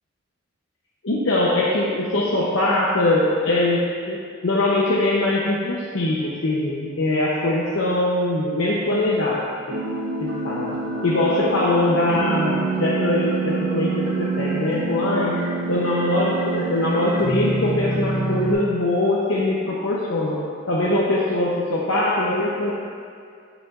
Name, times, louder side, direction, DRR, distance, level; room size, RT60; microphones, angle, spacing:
voice 1, 1.0-9.8 10.2-10.8 11.0-15.3 15.7-20.4 20.7-22.7, left 1 dB, 85° left, -5 dB, 0.9 m, -22 dB
sound 1, 9.7-18.5, right 3 dB, 55° right, 1.8 m, -26 dB
15.0 x 5.0 x 2.5 m, 2.2 s
head